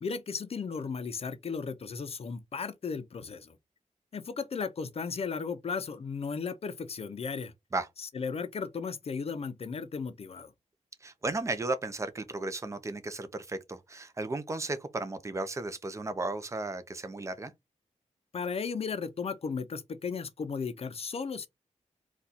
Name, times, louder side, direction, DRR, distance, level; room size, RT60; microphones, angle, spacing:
voice 1, 0.0-3.6 4.1-7.5 8.0-10.5 18.3-21.5, left 5 dB, 50° left, 0.6 m, -35 dB
voice 2, 11.0-17.5, right 2 dB, 25° right, 0.6 m, -34 dB
4.1 x 2.4 x 4.0 m
wide cardioid pair, 115°, 13 cm